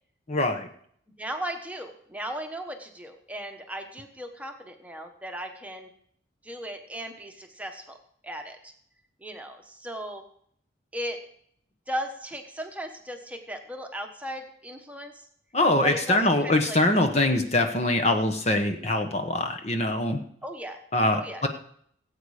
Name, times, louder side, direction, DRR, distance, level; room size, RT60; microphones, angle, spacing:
voice 1, 0.3-0.7 15.5-20.2 20.9-21.5, left 2 dB, 35° left, 5 dB, 1.0 m, -23 dB
voice 2, 1.2-5.9 6.4-7.8 8.2-8.7 9.2-10.2 10.9-11.2 11.9-15.2 15.8-16.8 20.4-20.8 21.1-21.4, equal, 5° right, 4 dB, 1.2 m, -36 dB
17.5 x 8.5 x 4.9 m, 0.65 s
head